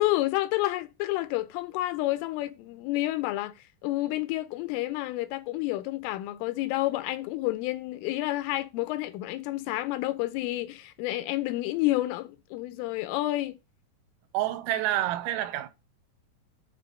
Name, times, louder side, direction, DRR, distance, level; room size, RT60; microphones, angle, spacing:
voice 1, 0.0-13.6, left 17 dB, 80° left, 3.0 m, -29 dB
voice 2, 14.3-15.7, right 13 dB, 85° right, 3.5 m, -28 dB
9.6 x 3.7 x 5.2 m
omnidirectional pair, 5.9 m